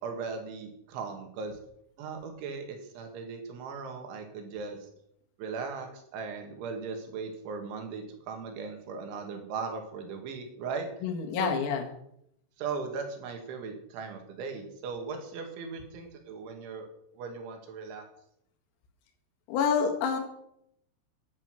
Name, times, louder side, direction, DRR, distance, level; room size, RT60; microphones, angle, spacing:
voice 1, 0.0-1.6 2.0-4.8 5.4-10.9 11.4-11.6 12.6-16.9 17.1-18.0, right 5 dB, 65° right, 4 dB, 4.4 m, -38 dB
voice 2, 11.0-11.9 19.5-20.2, left 6 dB, 85° left, 2 dB, 4.7 m, -27 dB
11.5 x 10.5 x 7.8 m, 0.75 s
omnidirectional pair, 6.0 m